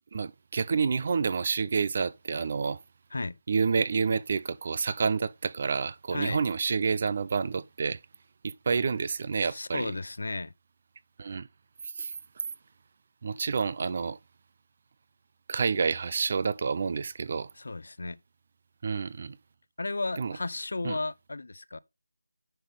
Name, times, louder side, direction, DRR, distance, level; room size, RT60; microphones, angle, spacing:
voice 1, 0.1-2.8 3.5-8.0 8.4-9.9 11.2-11.5 12.0-12.1 13.2-14.2 15.5-17.5 18.8-19.4 20.2-20.4 20.8-21.0, right 5 dB, 35° right, 0.5 m, -29 dB
voice 2, 9.4-10.5 17.6-18.2 19.8-21.8, left 2 dB, 60° left, 0.6 m, -34 dB
10.0 x 5.5 x 3.6 m
figure-of-eight pair, 170°, 0 cm